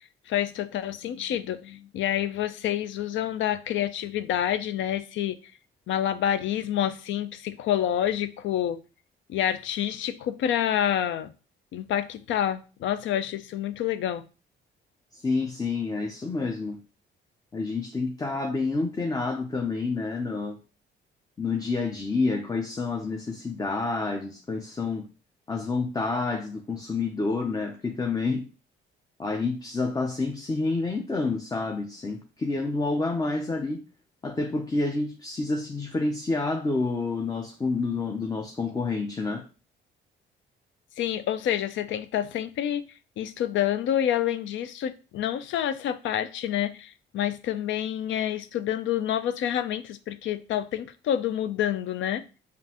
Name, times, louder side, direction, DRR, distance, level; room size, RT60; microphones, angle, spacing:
voice 1, 0.0-5.4 5.9-8.8 9.3-11.3 11.7-14.2 41.0-42.8 43.2-52.2, left 10 dB, 75° left, 0.4 m, -28 dB
voice 2, 15.1-16.8 17.5-20.6 21.4-25.1 25.5-28.5 29.2-33.8 34.2-39.4, left 3 dB, 20° left, 0.5 m, -28 dB
5.2 x 2.5 x 2.9 m
cardioid pair, 90°, 20 cm